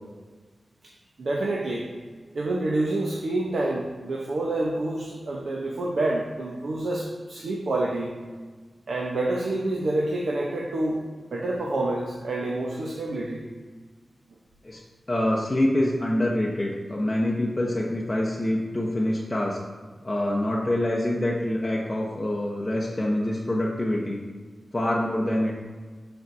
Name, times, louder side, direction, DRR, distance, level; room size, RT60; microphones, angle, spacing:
voice 1, 1.2-1.9 2.3-8.1 8.9-11.0 11.3-13.4, right 2 dB, 75° right, -2 dB, 0.8 m, -27 dB
voice 2, 15.1-19.6 20.0-24.2 24.7-25.5, left 1 dB, 20° left, -3 dB, 0.8 m, -25 dB
13.0 x 4.4 x 2.7 m, 1.4 s
wide cardioid pair, 100°, 0 cm